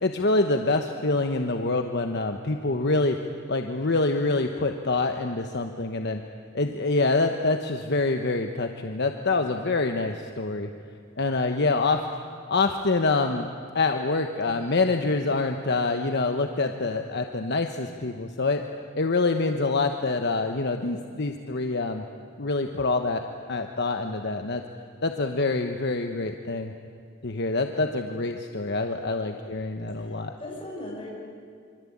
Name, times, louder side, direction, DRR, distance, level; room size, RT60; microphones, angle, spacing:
voice 1, 0.0-3.2 3.5-6.2 6.5-10.7 11.2-12.0 12.5-13.5 13.7-18.6 18.9-22.0 22.4-23.2 23.5-24.6 25.0-26.7 27.2-30.3, left 3 dB, 55° left, 5 dB, 1.2 m, -26 dB
voice 2, 29.9-31.1, left 1 dB, 25° left, -2 dB, 8.0 m, -39 dB
26.0 x 25.0 x 8.7 m, 2.2 s
head